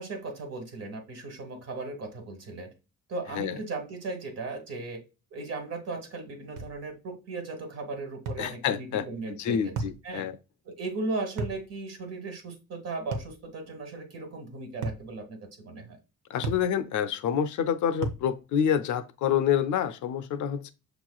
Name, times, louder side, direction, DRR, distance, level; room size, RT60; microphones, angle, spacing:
voice 1, 0.0-2.7 3.1-5.0 5.3-9.7 10.0-10.2 10.6-16.0, right 3 dB, 55° right, 1.5 m, -37 dB
sound 1, 6.6-6.8 8.3-8.5 9.8-10.0 11.4-11.6 13.1-13.4 14.8-15.1 16.4-16.7 18.0-18.3, right 3 dB, 85° right, 0.8 m, -33 dB
voice 2, 8.4-10.4 16.3-20.7, left 8 dB, 75° left, 0.6 m, -28 dB
6.4 x 3.0 x 2.3 m
cardioid pair, 90°, 30 cm